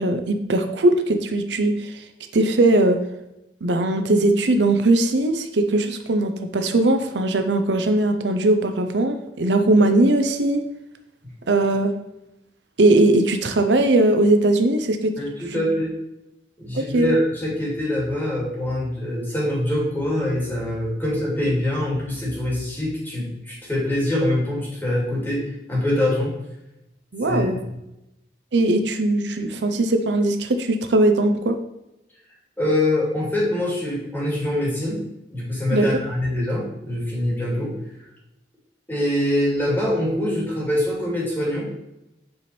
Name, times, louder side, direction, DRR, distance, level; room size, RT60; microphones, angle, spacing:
voice 1, 0.0-1.9 2.3-3.0 3.6-10.6 11.5-11.9 12.8-15.1 16.7-17.1 27.1-27.6 28.5-31.6 35.7-35.9, right 2 dB, 80° right, 7 dB, 0.6 m, -19 dB
voice 2, 15.2-15.9 16.6-25.4 25.7-26.3 27.3-27.6 32.6-35.0 35.3-37.7 38.9-41.7, left 1 dB, 10° left, -5 dB, 2.4 m, -24 dB
7.9 x 4.3 x 3.3 m, 0.89 s
head